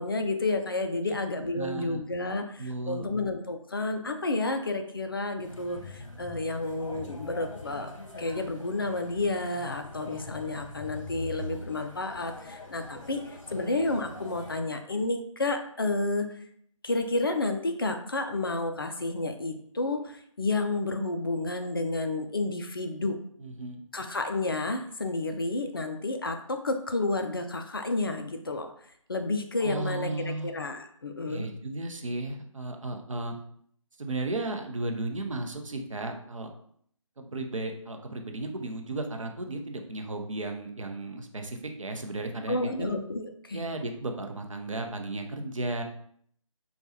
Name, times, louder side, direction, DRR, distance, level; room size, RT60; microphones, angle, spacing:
voice 1, 0.0-7.9 8.2-13.2 13.5-16.3 16.8-23.2 23.9-28.7 29.1-31.5 42.5-43.7, left 2 dB, 40° left, 6 dB, 0.4 m, -30 dB
voice 2, 1.6-2.0 2.6-3.1 23.4-23.8 29.6-30.5 31.3-33.4 34.0-36.5 37.2-42.9 43.5-45.8, right 2 dB, 70° right, 4 dB, 0.6 m, -34 dB
sound 1, 5.4-14.6, left 2 dB, 65° left, 1.0 m, -43 dB
4.7 x 2.3 x 2.8 m, 0.64 s
figure-of-eight pair, 155°, 17 cm